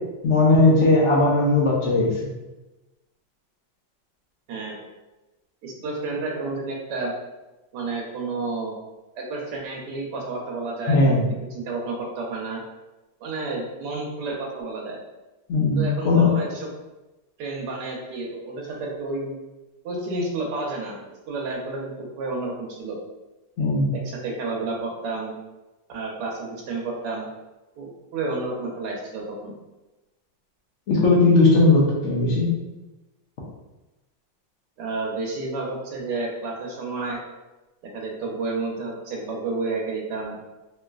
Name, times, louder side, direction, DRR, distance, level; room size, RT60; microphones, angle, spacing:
voice 1, 0.2-2.1 10.9-11.3 15.5-16.3 23.6-23.9 30.9-32.5, left 2 dB, 70° left, -3 dB, 0.6 m, -18 dB
voice 2, 4.5-4.9 5.6-7.1 7.7-8.7 9.2-11.2 11.5-12.6 13.2-15.0 15.8-16.7 17.4-19.4 19.8-21.0 21.3-23.0 23.9-25.4 25.9-27.3 27.8-29.5 34.8-37.2 37.9-40.4, right 3 dB, 75° right, -2 dB, 1.2 m, -30 dB
3.0 x 2.8 x 2.3 m, 1.1 s
omnidirectional pair, 2.0 m